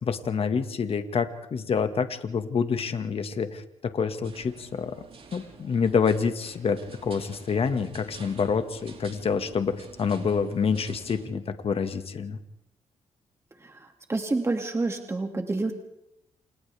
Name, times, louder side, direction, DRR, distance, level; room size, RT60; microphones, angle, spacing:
voice 1, 0.0-5.0 5.3-12.4, left 6 dB, 50° left, 8 dB, 1.8 m, -27 dB
sound 1, 4.2-11.3, right 4 dB, 55° right, 4.5 m, -49 dB
voice 2, 14.1-15.7, right 3 dB, 20° right, 3 dB, 2.3 m, -28 dB
28.5 x 28.0 x 3.5 m, 0.80 s
cardioid pair, 85°, 12 cm